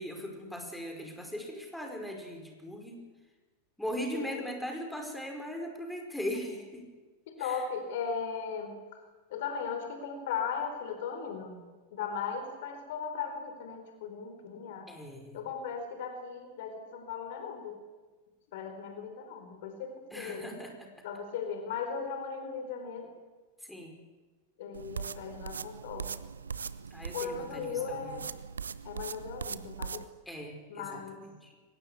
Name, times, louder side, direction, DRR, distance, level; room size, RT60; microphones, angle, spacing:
voice 1, 0.0-3.0 3.8-6.9 7.4-7.6 14.9-15.4 20.1-20.9 23.6-24.0 26.9-28.2 30.3-31.1 31.4-31.6, equal, 5° left, 3 dB, 5.3 m, -39 dB
voice 2, 4.1-4.5 6.3-6.6 7.3-9.0 9.3-11.6 11.9-14.9 15.3-17.8 18.5-20.5 21.0-23.1 24.6-26.1 27.1-28.3 28.8-30.1 30.7-31.3, left 6 dB, 55° left, 7 dB, 4.2 m, -37 dB
sound 1, 24.7-30.0, right 6 dB, 70° right, 0.9 m, -40 dB
23.5 x 20.0 x 8.4 m, 1.3 s
figure-of-eight pair, 90°, 0 cm